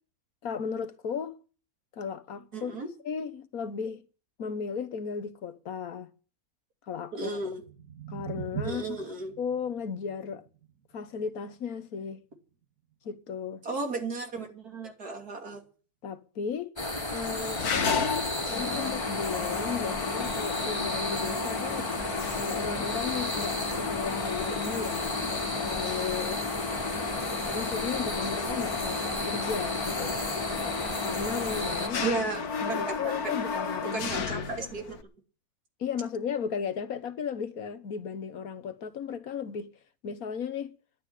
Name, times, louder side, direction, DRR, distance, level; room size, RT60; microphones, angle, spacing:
voice 1, 0.4-1.4 1.9-2.7 3.0-4.0 4.4-6.1 6.9-7.4 8.1-9.0 9.4-10.4 10.9-12.2 13.0-13.6 16.0-16.8 17.1-21.9 22.4-26.4 27.5-30.2 30.5-30.7 31.0-32.0 32.6-34.5 35.8-39.7 40.0-40.7, left 6 dB, 70° left, 1.6 m, -35 dB
voice 2, 2.5-2.9 7.1-7.6 8.6-9.3 13.6-15.6 32.0-33.3 33.9-35.0, right 3 dB, 85° right, 3.4 m, -34 dB
sound 1, 7.3-13.5, right 7 dB, 65° right, 2.2 m, -43 dB
sound 2, 16.8-31.9, left 1 dB, 15° left, 2.1 m, -33 dB
Mechanisms, 17.6-35.0, left 5 dB, 85° left, 1.8 m, -34 dB
12.0 x 9.0 x 9.9 m
omnidirectional pair, 1.6 m